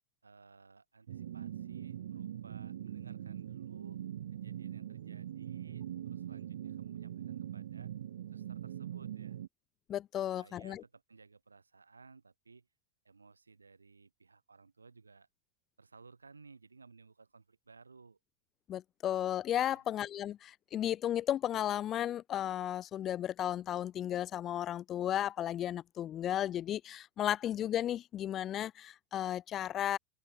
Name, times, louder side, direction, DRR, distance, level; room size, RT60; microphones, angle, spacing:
voice 1, 0.2-4.0 4.3-7.9 8.3-9.4 10.3-12.7 13.0-15.3 15.8-18.2 19.6-19.8, right 4 dB, 75° right, 2.8 m, -58 dB
sound 1, 1.1-9.5, right 11 dB, 60° right, 0.3 m, -42 dB
voice 2, 9.9-10.8 18.7-30.0, left 11 dB, 30° left, 0.8 m, -34 dB
open air
figure-of-eight pair, 90°, 0 cm